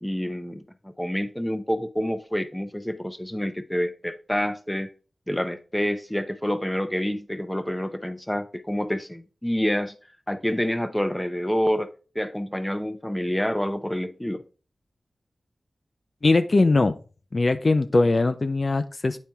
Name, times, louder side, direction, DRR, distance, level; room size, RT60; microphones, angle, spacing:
voice 1, 0.0-4.9 5.3-9.9 10.3-14.4, equal, 10° left, 0.7 m, -28 dB
voice 2, 16.2-16.9 17.3-19.2, left 3 dB, 50° left, 0.5 m, -20 dB
9.0 x 4.3 x 3.5 m
cardioid pair, 55°, 0 cm